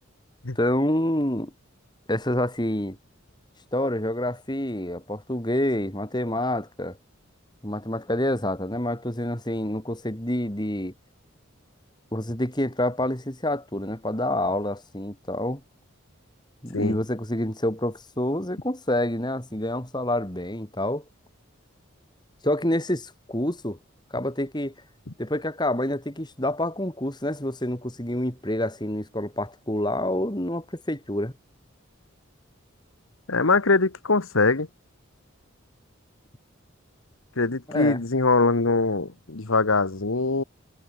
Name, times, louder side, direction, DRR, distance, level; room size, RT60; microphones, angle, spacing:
voice 1, 0.5-1.5 2.1-3.0 3.7-7.0 7.6-10.9 12.1-15.6 16.6-21.0 22.4-23.8 24.1-24.7 25.2-31.3 37.7-38.0, left 1 dB, 20° left, 3.4 m, -27 dB
voice 2, 33.3-34.7 37.4-40.4, left 3 dB, 80° left, 1.5 m, -22 dB
head